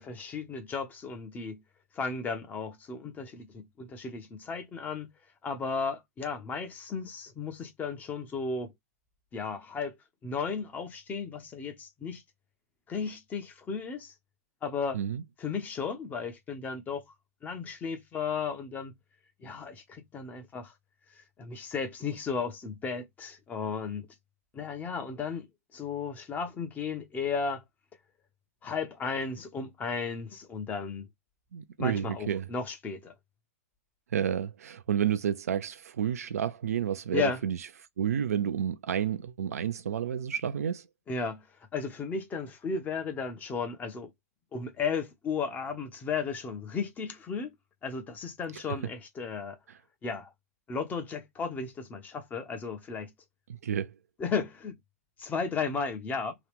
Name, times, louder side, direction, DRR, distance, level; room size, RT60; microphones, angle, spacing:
voice 1, 0.0-1.6 1.9-5.1 5.4-8.7 9.3-10.0 10.2-12.2 12.9-14.1 14.6-15.0 15.4-17.0 17.4-18.9 19.4-20.7 21.4-24.1 24.5-25.5 25.7-27.6 28.6-31.1 31.8-33.1 37.1-37.4 41.1-41.4 41.7-44.1 44.5-47.5 47.8-49.6 50.0-50.3 50.7-53.1 54.2-54.8 55.2-56.4, left 5 dB, 20° left, 0.8 m, -34 dB
voice 2, 31.5-32.5 34.1-37.6 38.0-40.8 53.6-53.9, right 9 dB, 70° right, 0.4 m, -30 dB
2.9 x 2.3 x 3.4 m
figure-of-eight pair, 110°, 8 cm